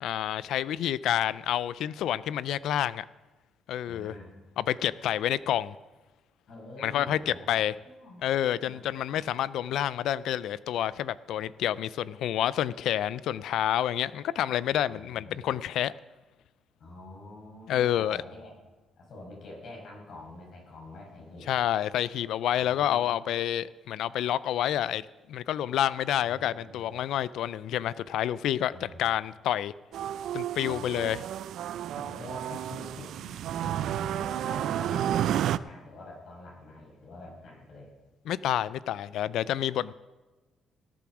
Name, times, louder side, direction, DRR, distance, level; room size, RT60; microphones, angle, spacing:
voice 1, 0.0-3.0 3.7-4.1 4.6-5.8 6.8-7.7 8.2-15.9 17.7-18.2 21.5-29.7 30.3-31.2 38.3-39.9, left 11 dB, 80° left, 19 dB, 0.3 m, -28 dB
voice 2, 3.9-4.3 6.5-7.5 7.8-8.3 8.6-8.8 14.7-15.4 16.8-18.5 19.0-21.5 22.5-23.3 26.2-26.9 28.7-29.0 30.6-31.0 31.9-37.9, left 2 dB, 65° left, -1 dB, 5.7 m, -46 dB
sound 1, 29.9-35.6, right 11 dB, 75° right, 0.4 m, -31 dB
18.5 x 7.1 x 6.1 m, 1.2 s
cardioid pair, 90°, 0 cm